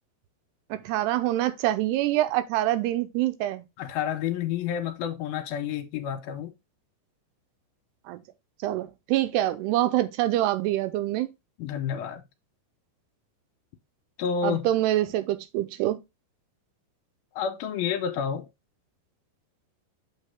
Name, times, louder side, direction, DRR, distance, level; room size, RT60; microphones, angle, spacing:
voice 1, 0.7-3.6 8.1-8.2 8.6-11.3 14.4-16.0, right 14 dB, 85° right, 2.7 m, -25 dB
voice 2, 3.8-6.5 11.6-12.2 14.2-14.7 17.4-18.5, left 8 dB, 70° left, 2.5 m, -29 dB
6.7 x 5.6 x 3.5 m
omnidirectional pair, 5.0 m